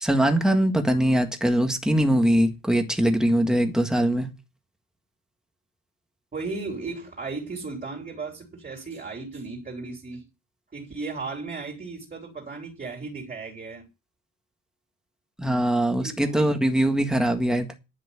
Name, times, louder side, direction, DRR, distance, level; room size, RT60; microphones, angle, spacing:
voice 1, 0.0-4.3 15.4-17.7, right 1 dB, ahead, 1.6 m, -22 dB
voice 2, 6.3-10.3 10.7-13.9 16.0-16.5, right 3 dB, 25° right, 3.6 m, -35 dB
11.0 x 6.1 x 8.5 m
wide cardioid pair, 155°, 33 cm